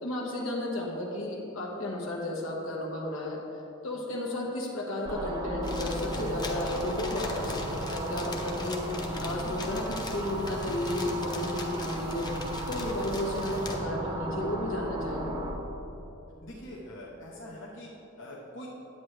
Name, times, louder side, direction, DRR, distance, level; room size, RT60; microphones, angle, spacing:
voice 1, 0.0-3.4 3.8-8.8 9.2-12.3 12.7-15.3, left 1 dB, 80° left, -1 dB, 1.3 m, -33 dB
sound 1, 5.1-15.5, right 1 dB, 20° right, 0.7 m, -35 dB
sound 2, 5.6-13.8, left 2 dB, 20° left, 0.7 m, -41 dB
voice 2, 16.4-17.9 18.2-18.7, left 1 dB, 65° left, -5 dB, 0.9 m, -43 dB
9.5 x 8.7 x 3.2 m, 3.0 s
head